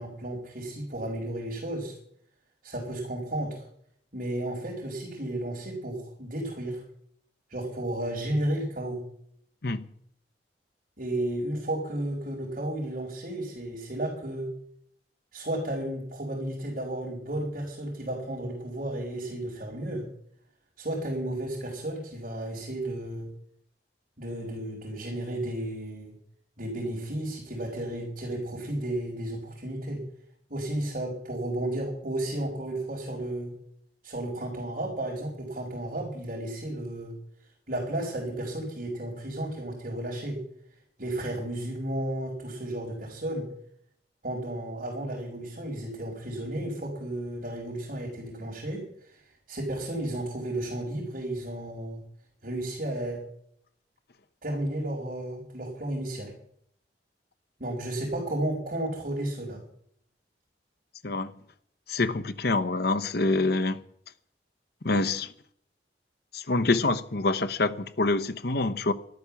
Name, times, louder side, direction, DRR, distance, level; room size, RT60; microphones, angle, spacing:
voice 1, 0.0-2.0 2.6-3.7 4.1-6.8 7.5-9.1 11.0-14.5 15.3-20.1 20.8-23.3 24.2-26.1 26.6-30.0 30.5-33.5 34.0-37.1 37.7-40.4 41.0-43.5 44.2-49.2 49.5-52.0 52.4-53.2 54.4-56.3 57.6-59.6, right 1 dB, 50° right, 4.7 m, -33 dB
voice 2, 61.9-63.8 64.8-65.3 66.3-68.9, left 3 dB, 60° left, 1.0 m, -26 dB
13.0 x 12.0 x 7.1 m
head